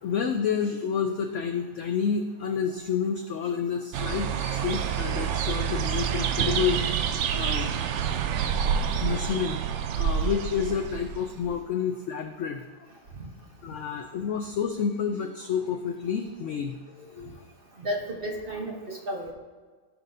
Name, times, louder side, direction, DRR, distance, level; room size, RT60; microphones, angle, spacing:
voice 1, 0.0-6.8 7.3-8.2 9.0-9.6 9.9-12.6 13.6-17.4, left 7 dB, 80° left, 5 dB, 0.6 m, -29 dB
sound 1, 3.9-11.6, right 8 dB, 90° right, 0.6 m, -28 dB
voice 2, 17.8-19.3, equal, 40° right, -1 dB, 1.0 m, -32 dB
15.0 x 6.1 x 2.7 m, 1.5 s
omnidirectional pair, 1.9 m